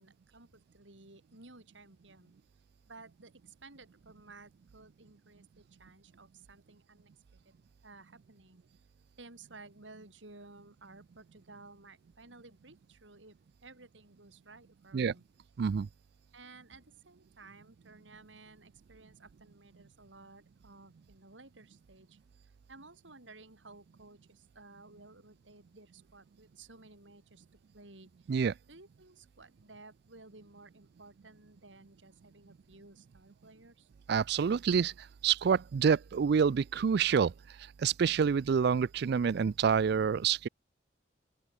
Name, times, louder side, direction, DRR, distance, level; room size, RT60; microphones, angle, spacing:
voice 1, 0.0-2.3 2.9-7.5 7.8-8.6 9.2-13.4 13.6-15.2 16.3-22.2 22.7-27.5 27.7-28.3 28.7-33.9, right 3 dB, 85° right, 5.5 m, -55 dB
voice 2, 34.1-34.9 35.2-37.3 37.8-40.5, right 6 dB, 60° right, 0.4 m, -27 dB
open air
head